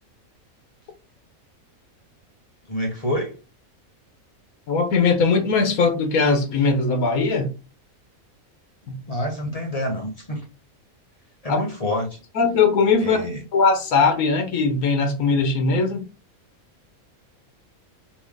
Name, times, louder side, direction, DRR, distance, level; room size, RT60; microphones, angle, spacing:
voice 1, 2.7-3.3 9.1-10.4 11.4-12.2 13.0-13.4, left 1 dB, 25° left, 1.4 m, -27 dB
voice 2, 4.7-7.5 8.9-9.0 11.5-11.6 12.3-16.0, left 4 dB, 85° left, 1.4 m, -20 dB
4.3 x 3.3 x 3.7 m
omnidirectional pair, 1.5 m